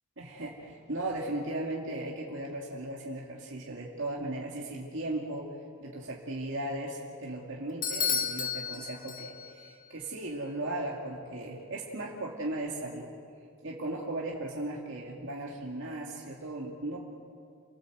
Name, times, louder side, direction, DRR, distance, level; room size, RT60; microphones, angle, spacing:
voice 1, 0.2-5.5 5.8-13.1 13.6-17.0, right 1 dB, 55° right, -2 dB, 2.4 m, -37 dB
Bell / Doorbell, 7.8-9.7, left 7 dB, 35° left, 1.7 m, -32 dB
28.5 x 18.5 x 7.9 m, 2.4 s
head